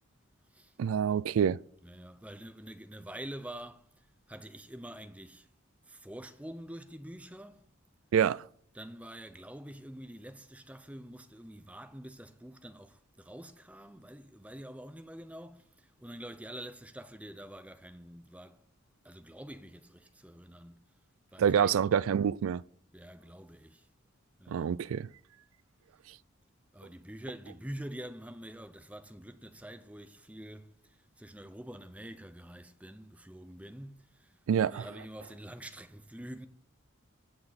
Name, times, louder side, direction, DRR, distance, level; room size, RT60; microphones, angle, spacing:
voice 1, 0.8-1.6 8.1-8.4 21.4-22.6 24.5-25.1 34.5-34.9, right 8 dB, 80° right, 0.3 m, -27 dB
voice 2, 1.8-3.9 4.3-5.5 5.9-7.6 8.7-18.6 19.0-20.9 21.3-22.0 22.9-23.9 24.4-24.8 26.7-34.3 34.6-36.5, right 1 dB, 5° right, 0.6 m, -46 dB
16.5 x 5.9 x 4.2 m
head